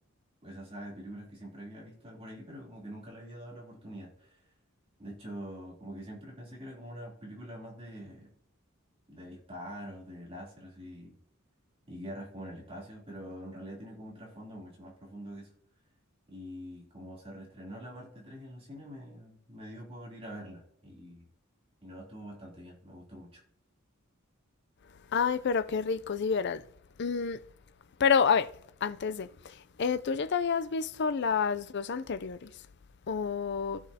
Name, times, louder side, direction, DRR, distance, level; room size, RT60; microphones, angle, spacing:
voice 1, 0.4-4.4 5.0-8.3 9.1-11.2 11.9-15.5 16.3-21.2 21.8-23.4, equal, 30° right, 3.2 m, -45 dB
voice 2, 25.1-26.6 27.0-27.4 28.0-28.5 28.8-32.5 33.1-33.8, left 6 dB, 55° left, 0.5 m, -29 dB
15.5 x 6.3 x 2.8 m
head